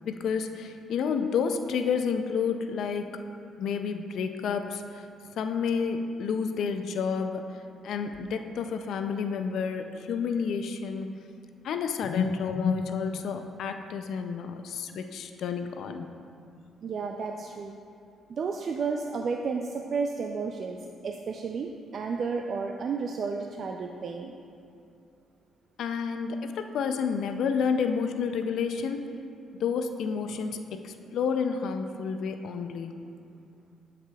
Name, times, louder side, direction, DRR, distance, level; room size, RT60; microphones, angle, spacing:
voice 1, 0.0-3.2 3.6-5.0 5.4-7.6 7.8-11.2 11.6-16.2 25.8-29.0 29.6-33.1, left 6 dB, 75° left, 7 dB, 0.4 m, -30 dB
voice 2, 16.8-17.8 18.3-24.3, right 5 dB, 55° right, 3 dB, 0.3 m, -32 dB
12.0 x 4.9 x 2.3 m, 2.5 s
cardioid pair, 90°, 0 cm